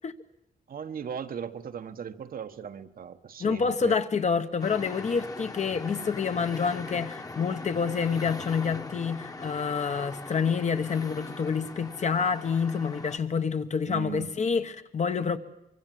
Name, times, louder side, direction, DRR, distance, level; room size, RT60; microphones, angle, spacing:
voice 1, 0.7-4.0 13.9-14.3, right 7 dB, 70° right, 1.2 m, -38 dB
voice 2, 3.4-15.4, left 5 dB, 50° left, 1.2 m, -28 dB
sound 1, 4.6-13.2, left 3 dB, 25° left, 1.2 m, -41 dB
24.5 x 24.0 x 7.7 m
wide cardioid pair, 160°, 15 cm